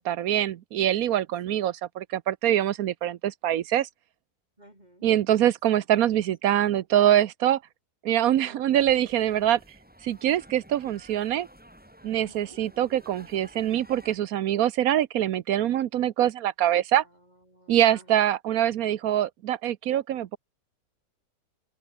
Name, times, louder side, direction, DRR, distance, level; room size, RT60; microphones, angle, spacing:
voice 1, 0.0-3.9 5.0-7.6 8.0-9.6 10.0-11.5 12.0-17.0 17.7-20.4, right 11 dB, 70° right, 1.1 m, -24 dB
voice 2, 4.6-5.1 6.0-6.2 8.4-8.9 12.2-12.6 16.9-18.3, right 1 dB, 25° right, 6.4 m, -54 dB
sound 1, 8.7-14.2, equal, 5° right, 3.3 m, -52 dB
omnidirectional pair, 1.6 m